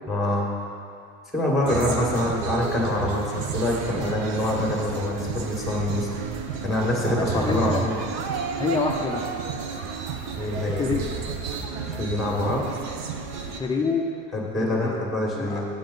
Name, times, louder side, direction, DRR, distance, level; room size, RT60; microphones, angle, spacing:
voice 1, 0.1-0.5 1.3-6.1 6.6-8.0 10.4-10.8 11.9-12.6 14.3-15.7, left 1 dB, ahead, -3 dB, 1.8 m, -25 dB
voice 2, 1.6-1.9 7.2-7.8 8.6-9.3 10.7-11.0 13.5-14.1 14.5-15.0 15.4-15.6, left 4 dB, 15° left, 0 dB, 0.5 m, -27 dB
sound 1, 1.7-13.6, right 5 dB, 60° right, 0.8 m, -31 dB
8.8 x 7.8 x 3.9 m, 2.4 s
cardioid pair, 135°, 32 cm